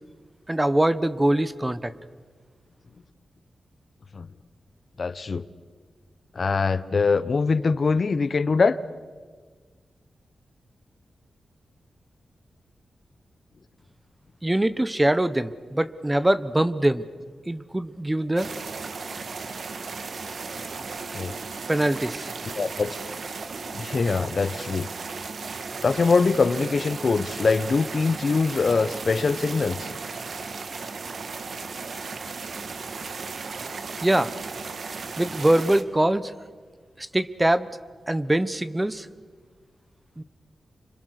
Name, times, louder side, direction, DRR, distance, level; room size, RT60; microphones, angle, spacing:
voice 1, 0.5-1.9 14.4-17.0 17.5-18.5 21.7-22.3 34.0-34.3 35.2-36.3 37.0-37.7 38.1-39.1 40.2-40.3, right 1 dB, 15° right, 13 dB, 1.1 m, -23 dB
voice 2, 5.0-5.5 6.3-8.8 21.1-21.3 22.5-22.9 23.7-24.9 25.8-29.9, left 4 dB, 50° left, 13 dB, 1.0 m, -23 dB
sound 1, 18.4-35.8, right 4 dB, 60° right, 1.7 m, -35 dB
29.5 x 26.0 x 6.7 m, 1.5 s
wide cardioid pair, 90°, 0 cm